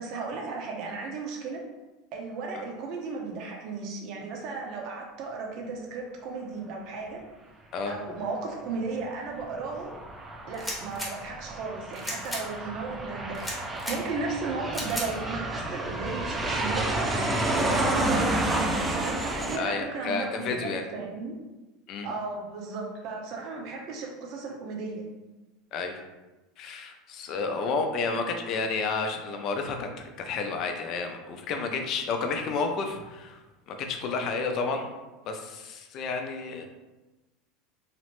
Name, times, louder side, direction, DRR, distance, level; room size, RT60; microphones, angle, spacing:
voice 1, 0.0-1.6 2.1-7.2 7.9-9.9 10.5-21.3 22.0-25.1, right 4 dB, 55° right, 0 dB, 0.6 m, -35 dB
Aircraft, 9.4-19.6, right 1 dB, 15° right, 0.4 m, -30 dB
sound 1, 10.5-11.1 11.9-12.4 13.3-14.0 14.7-15.1, equal, 5° left, 0.9 m, -34 dB
voice 2, 19.5-20.9 21.9-22.1 25.7-26.0 26.6-33.4 33.7-34.9 35.2-36.6, left 4 dB, 50° left, 4 dB, 0.4 m, -31 dB
2.9 x 2.0 x 2.9 m, 1.1 s
supercardioid pair, 100°, 0 cm